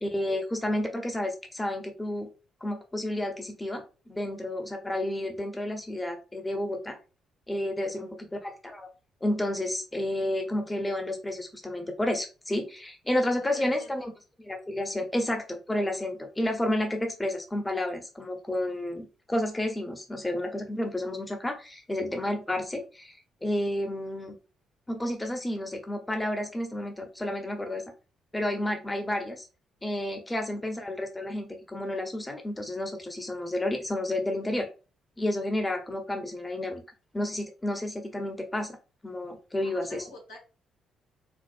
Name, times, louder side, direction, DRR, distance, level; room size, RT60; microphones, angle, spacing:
voice 1, 0.0-2.3 2.6-7.0 7.5-8.9 9.2-14.1 14.4-24.3 24.9-27.8 28.3-29.5 29.8-34.7 35.2-36.8 37.1-38.8 39.0-40.0, left 1 dB, 15° left, 4 dB, 0.8 m, -31 dB
voice 2, 13.3-14.1 30.4-30.5 39.6-40.4, left 2 dB, 90° left, -5 dB, 1.5 m, -48 dB
4.4 x 2.0 x 2.5 m, 0.32 s
hypercardioid pair, 45°, 0 cm